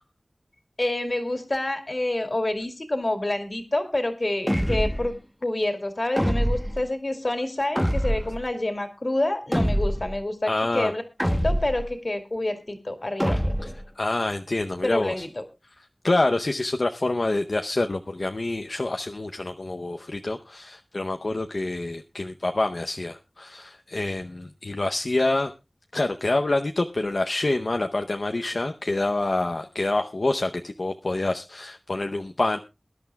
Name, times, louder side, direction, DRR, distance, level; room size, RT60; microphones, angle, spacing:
voice 1, 0.8-5.1 5.4-11.0 11.4-13.4 14.8-15.4, left 1 dB, 55° left, 7 dB, 2.3 m, -27 dB
sound 1, 4.5-5.1 6.2-6.8 7.8-8.4 9.5-10.2 11.2-11.9 13.2-13.8, equal, 5° left, 0.9 m, -24 dB
voice 2, 10.5-10.9 13.6-15.3 16.0-25.5 25.9-32.6, left 2 dB, 75° left, 5 dB, 0.7 m, -27 dB
23.0 x 11.0 x 2.3 m, 0.26 s
wide cardioid pair, 45°, 0 cm